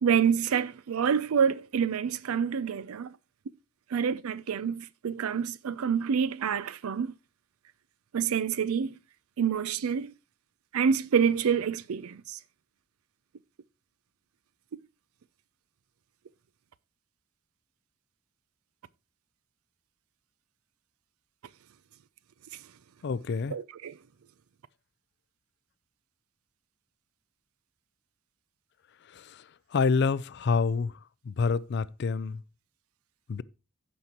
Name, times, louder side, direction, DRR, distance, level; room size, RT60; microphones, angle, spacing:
voice 1, 0.0-3.1 3.9-7.1 8.1-9.0 9.4-10.1 10.7-12.4 23.5-24.0, right 7 dB, 80° right, 0.4 m, -27 dB
voice 2, 23.0-23.6 29.2-29.4 29.7-30.9 31.3-32.4 33.3-33.4, left 5 dB, 50° left, 0.4 m, -27 dB
15.5 x 5.4 x 2.9 m
head